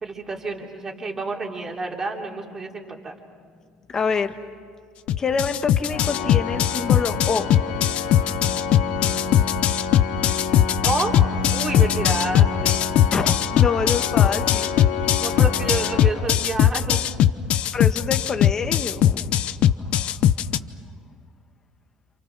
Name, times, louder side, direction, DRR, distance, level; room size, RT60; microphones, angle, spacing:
voice 1, 0.0-3.1 10.8-11.1 11.5-12.8 15.2-17.1, right 3 dB, 20° right, 0 dB, 3.1 m, -29 dB
voice 2, 3.9-4.4 5.2-7.5 13.1-14.7 17.7-19.4, left 5 dB, 25° left, 8 dB, 1.4 m, -26 dB
sound 1, 5.1-20.6, left 11 dB, 50° left, 0.8 m, -19 dB
Organ, 5.9-16.8, left 5 dB, 80° left, 2.1 m, -30 dB
28.5 x 28.5 x 6.0 m, 2.2 s
cardioid pair, 155°, 2 cm